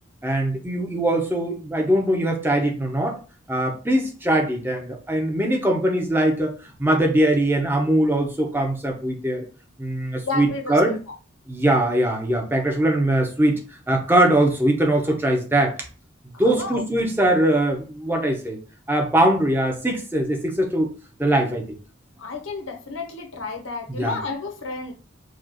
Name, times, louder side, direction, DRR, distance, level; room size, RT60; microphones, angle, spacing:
voice 1, 0.2-3.2 3.5-6.5 6.8-9.4 9.8-10.9 11.5-13.6 13.9-15.8 16.4-18.6 18.9-20.9 21.2-21.6 23.9-24.2, right 1 dB, 10° right, 2 dB, 0.7 m, -21 dB
voice 2, 10.3-11.0 16.4-16.8 22.2-24.9, left 3 dB, 85° left, 3 dB, 0.9 m, -31 dB
4.8 x 2.3 x 2.9 m, 0.35 s
head